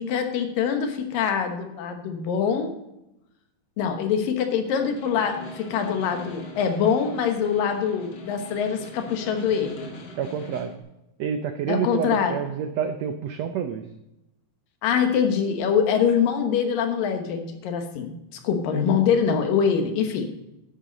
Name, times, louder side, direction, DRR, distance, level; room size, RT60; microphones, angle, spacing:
voice 1, 0.0-2.7 3.8-9.9 11.7-12.3 14.8-18.1 18.4-20.3, left 7 dB, 85° left, 5 dB, 3.0 m, -24 dB
Snare drum, 4.7-10.8, equal, 45° left, 1.9 m, -41 dB
voice 2, 10.1-10.7 11.2-13.9, right 7 dB, 85° right, 7 dB, 1.5 m, -28 dB
11.5 x 10.5 x 4.0 m, 0.89 s
omnidirectional pair, 3.9 m